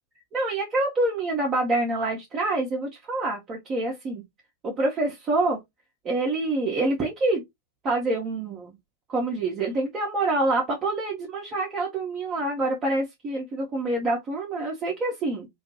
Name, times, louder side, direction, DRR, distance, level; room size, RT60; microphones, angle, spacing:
voice 1, 0.3-4.2 4.6-5.6 6.0-7.4 7.8-8.7 9.1-15.5, right 2 dB, 25° right, 0.7 m, -26 dB
2.3 x 2.2 x 2.7 m
figure-of-eight pair, 90°, 0 cm